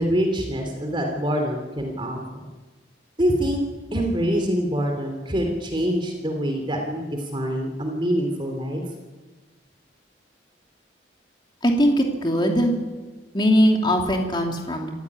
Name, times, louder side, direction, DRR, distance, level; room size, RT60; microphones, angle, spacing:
voice 1, 0.0-2.4 3.2-3.6 3.9-8.8, equal, 25° right, 3 dB, 3.2 m, -25 dB
voice 2, 11.6-12.8 13.3-14.9, equal, 25° left, 2 dB, 2.9 m, -20 dB
26.0 x 15.0 x 9.7 m, 1.3 s
head